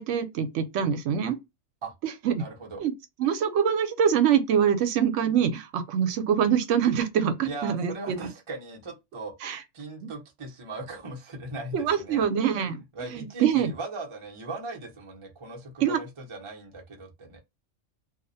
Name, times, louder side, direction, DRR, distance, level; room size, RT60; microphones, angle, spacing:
voice 1, 0.0-1.3 2.0-2.4 2.8-2.9 3.2-8.2 9.4-9.6 11.7-12.8 13.1-13.7 15.8-16.0, right 8 dB, 75° right, 0.9 m, -24 dB
voice 2, 2.3-2.8 7.4-9.3 9.7-12.2 12.9-17.4, right 2 dB, 35° right, 0.5 m, -39 dB
2.7 x 2.1 x 2.6 m
omnidirectional pair, 1.3 m